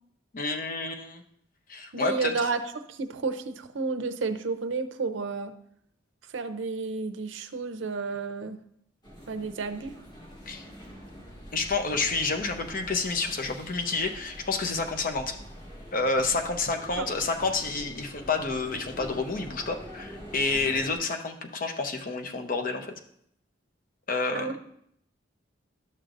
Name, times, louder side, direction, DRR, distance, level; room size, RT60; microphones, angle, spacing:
voice 1, 0.3-1.2 1.7-2.5 10.5-10.7 11.5-15.4 15.9-22.9 24.1-24.6, left 3 dB, 45° left, 5 dB, 0.8 m, -29 dB
voice 2, 1.9-2.6 2.9-5.5 6.3-8.6 9.3-9.9 17.0-17.1 24.3-24.6, right 4 dB, 85° right, 9 dB, 0.6 m, -31 dB
sound 1, 9.0-21.0, equal, 25° left, 1.7 m, -45 dB
12.0 x 6.5 x 2.6 m, 0.71 s
head